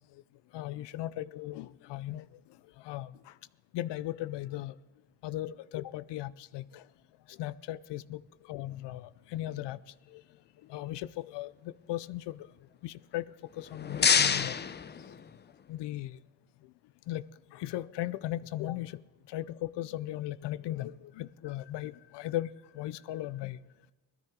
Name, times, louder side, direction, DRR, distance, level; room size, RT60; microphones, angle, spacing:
voice 1, 0.5-2.2 2.8-3.1 3.7-4.7 5.2-6.8 7.4-8.2 8.5-9.8 10.7-12.5 12.8-13.2 13.6-14.6 15.7-16.2 17.1-17.2 17.5-18.9 19.3-22.5 22.7-23.6, left 14 dB, 75° left, 17 dB, 0.6 m, -37 dB
sound 1, 13.5-15.7, left 6 dB, 25° left, 0.5 m, -28 dB
18.5 x 13.5 x 3.7 m, 1.1 s
cardioid pair, 85°, 42 cm